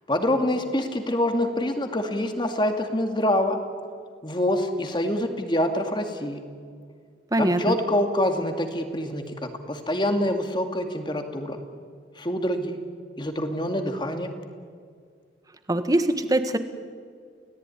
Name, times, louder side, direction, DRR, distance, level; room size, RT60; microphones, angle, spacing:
voice 1, 0.1-3.6 4.2-6.4 7.4-9.2 9.7-11.6 12.2-12.8 13.2-14.3, left 1 dB, 25° left, 6 dB, 2.3 m, -25 dB
voice 2, 7.3-7.8 15.7-16.6, right 1 dB, 20° right, 9 dB, 1.6 m, -22 dB
29.5 x 18.0 x 9.9 m, 2.1 s
head